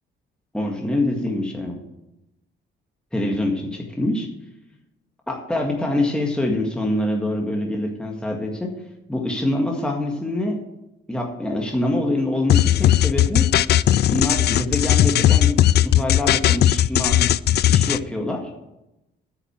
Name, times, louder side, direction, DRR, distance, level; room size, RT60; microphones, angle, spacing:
voice 1, 0.5-1.8 3.1-4.3 5.3-8.7 9.1-10.6 11.1-13.5 14.1-17.2 17.7-18.5, left 1 dB, 5° left, 0 dB, 1.8 m, -25 dB
sound 1, 12.5-18.0, left 12 dB, 55° left, 0.4 m, -17 dB
9.5 x 6.6 x 8.7 m, 0.92 s
cardioid pair, 90°, 20 cm